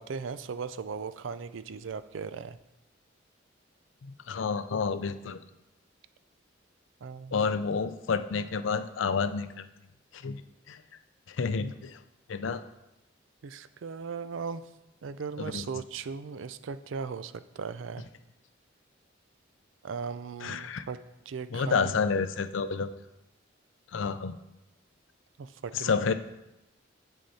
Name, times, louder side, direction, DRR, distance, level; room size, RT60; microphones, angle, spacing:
voice 1, 0.0-2.6 7.0-7.5 13.4-14.6 15.0-18.1 19.8-21.0 21.3-22.0 25.4-26.0, right 5 dB, 80° right, 13 dB, 0.4 m, -37 dB
voice 2, 4.0-5.4 7.3-9.7 10.1-10.4 10.7-10.8 11.3-12.0 12.3-12.6 15.4-15.6 20.4-20.8 21.5-22.9 23.9-24.4 25.7-26.1, left 5 dB, 80° left, 11 dB, 0.5 m, -29 dB
8.2 x 6.4 x 4.2 m, 0.93 s
head